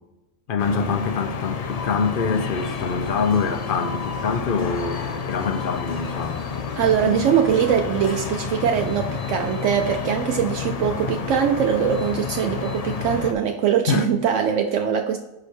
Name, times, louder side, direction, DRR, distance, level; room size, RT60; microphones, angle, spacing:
voice 1, 0.5-6.4 13.9-14.1, left 5 dB, 55° left, 0.7 m, -25 dB
sound 1, 0.6-13.3, left 6 dB, 80° left, 0.3 m, -30 dB
sound 2, 2.3-8.2, equal, 35° left, 1.1 m, -37 dB
voice 2, 6.8-15.2, right 8 dB, 70° right, 0.9 m, -22 dB
5.0 x 4.8 x 4.3 m
omnidirectional pair, 1.4 m